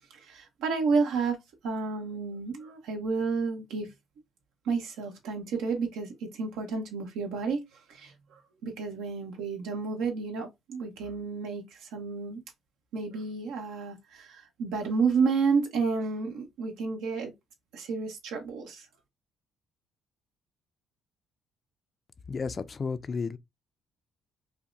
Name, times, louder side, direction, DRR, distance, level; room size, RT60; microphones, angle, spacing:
voice 1, 0.1-1.4 1.6-3.9 4.6-7.6 7.9-12.4 12.9-17.3 17.7-18.9, right 4 dB, 90° right, 1.2 m, -31 dB
voice 2, 22.3-23.4, left 5 dB, 35° left, 0.4 m, -32 dB
5.5 x 2.1 x 2.7 m
cardioid pair, 95°, 0 cm